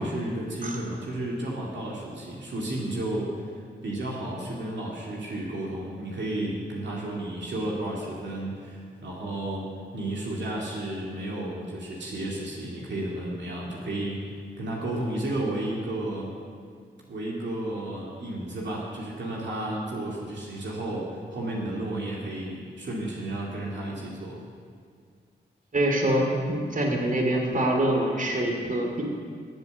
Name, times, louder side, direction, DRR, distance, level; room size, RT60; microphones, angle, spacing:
voice 1, 0.0-9.7 9.9-16.3 17.1-24.4, right 1 dB, 70° right, -4 dB, 2.3 m, -32 dB
voice 2, 25.7-29.0, right 1 dB, 45° right, 1 dB, 2.7 m, -25 dB
13.5 x 7.9 x 7.0 m, 2.1 s
supercardioid pair, 45°, 19 cm